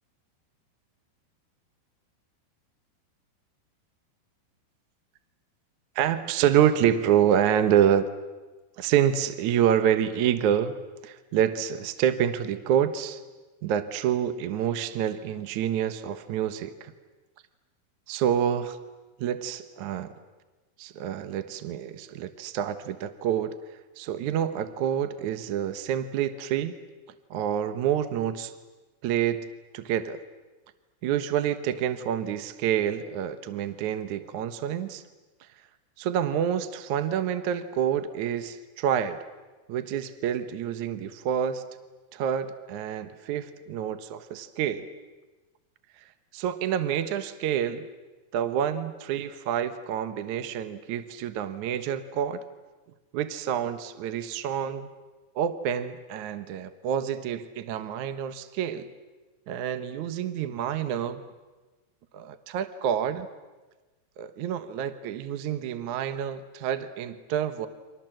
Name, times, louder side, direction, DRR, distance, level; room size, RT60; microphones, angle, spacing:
voice 1, 6.0-8.1 8.8-10.8 11.0-13.2 13.6-16.9 18.1-18.8 19.2-20.1 20.8-23.6 24.0-26.8 27.3-28.5 29.0-29.5 29.7-30.2 31.0-35.0 36.0-39.2 39.7-41.6 42.1-44.9 46.3-47.9 48.3-52.4 53.1-54.9 55.4-58.9 59.5-61.2 62.1-63.3 64.2-67.7, right 9 dB, 65° right, 11 dB, 2.1 m, -27 dB
30.0 x 26.0 x 7.7 m, 1.2 s
omnidirectional pair, 4.6 m